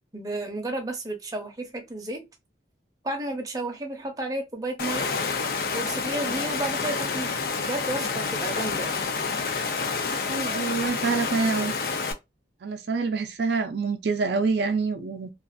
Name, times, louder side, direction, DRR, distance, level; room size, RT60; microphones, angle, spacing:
voice 1, 0.1-2.2 3.0-5.1 5.7-9.0, right 1 dB, 20° right, 0.6 m, -32 dB
Water, 4.8-12.1, left 4 dB, 55° left, 0.4 m, -28 dB
voice 2, 10.1-11.7 12.6-15.3, right 4 dB, 70° right, 0.4 m, -26 dB
2.4 x 2.4 x 2.5 m
head